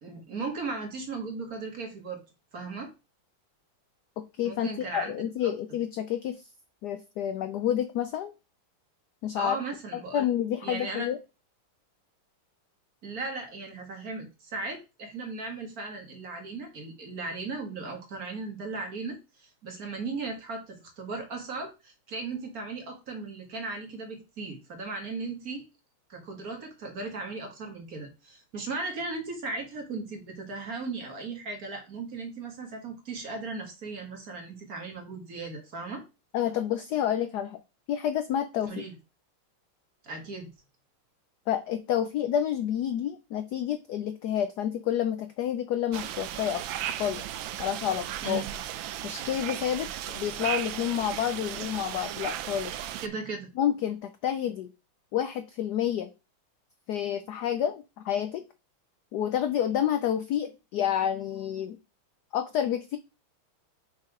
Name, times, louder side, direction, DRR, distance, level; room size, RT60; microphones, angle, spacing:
voice 1, 0.0-2.2 2.5-2.9 4.4-5.1 5.4-5.5 9.4-10.3 10.6-11.1 13.0-25.7 26.1-36.0 38.6-38.9 40.0-40.5 48.2-48.5 53.0-53.5, right 3 dB, 45° right, 3 dB, 1.9 m, -37 dB
voice 2, 4.2-6.4 6.8-8.3 9.2-9.6 10.1-11.2 36.3-37.6 37.9-38.7 41.5-46.6 47.0-47.2 47.6-48.4 49.0-52.8 53.6-54.7 55.1-56.1 56.9-58.4 59.1-61.8 62.3-63.0, left 10 dB, 80° left, 9 dB, 0.9 m, -29 dB
sound 1, 45.9-53.1, right 11 dB, 75° right, 1.3 m, -36 dB
6.1 x 4.2 x 4.9 m, 0.28 s
omnidirectional pair, 2.3 m